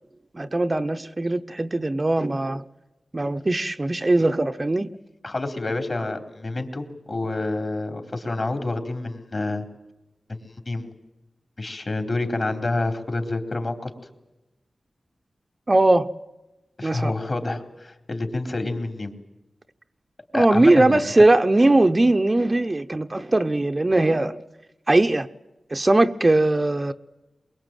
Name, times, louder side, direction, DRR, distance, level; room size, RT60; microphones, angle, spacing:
voice 1, 0.3-2.6 3.1-4.9 15.7-16.1 16.8-17.1 20.3-24.4 24.9-25.3 25.7-26.9, right 2 dB, 30° right, 0.9 m, -20 dB
voice 2, 5.2-9.6 10.3-10.4 10.7-10.9 11.6-13.9 16.8-19.1 20.3-21.0, left 2 dB, 45° left, 3.9 m, -28 dB
23.0 x 22.5 x 9.1 m
wide cardioid pair, 75°, 0 cm